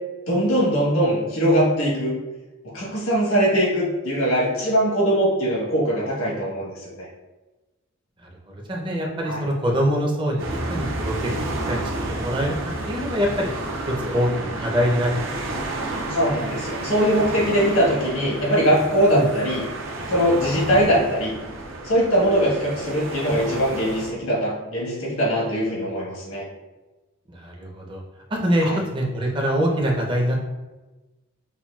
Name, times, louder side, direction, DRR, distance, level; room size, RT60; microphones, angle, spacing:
voice 1, 0.3-2.2 2.7-7.0 9.2-9.4 16.1-19.6 20.1-21.3 21.8-26.4 28.6-28.8, equal, 85° left, -5 dB, 1.3 m, -21 dB
voice 2, 8.7-11.4 11.7-12.5 12.9-13.5 14.0-15.6 19.1-19.2 27.3-28.0 28.3-30.4, equal, 25° right, -2 dB, 0.6 m, -24 dB
sound 1, 10.4-24.1, right 2 dB, 65° right, 0.6 m, -31 dB
5.5 x 2.3 x 2.3 m, 1.1 s
head